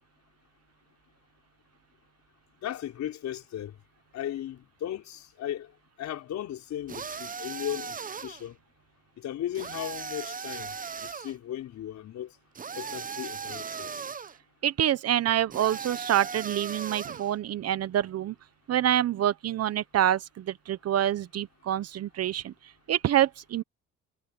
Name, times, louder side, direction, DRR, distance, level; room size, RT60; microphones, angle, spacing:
voice 1, 2.6-3.7 4.1-5.7 6.0-8.6 9.2-10.7 11.0-12.3 12.8-13.9, left 11 dB, 60° left, 4.9 m, -36 dB
sound 1, 6.9-8.5 9.5-11.3 12.6-14.4 15.5-17.3, right 6 dB, 25° right, 0.9 m, -37 dB
voice 2, 14.6-18.3 18.7-22.5 22.9-23.6, right 11 dB, 55° right, 1.1 m, -26 dB
supercardioid pair, 80°, 31 cm